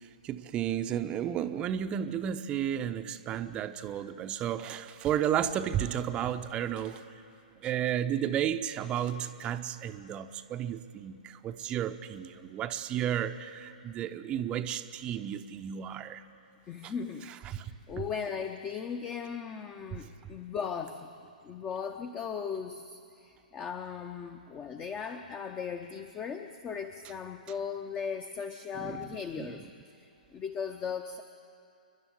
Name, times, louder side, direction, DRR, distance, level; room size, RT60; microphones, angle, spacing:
voice 1, 0.2-7.0 7.6-16.2 16.8-16.9 17.5-17.7 28.8-29.0 29.4-29.5, right 10 dB, 20° right, 8 dB, 0.7 m, -32 dB
voice 2, 16.7-21.1 21.4-29.6 30.0-31.2, left 6 dB, 20° left, 6 dB, 0.9 m, -38 dB
28.0 x 11.0 x 9.8 m, 2.5 s
figure-of-eight pair, 115°, 5 cm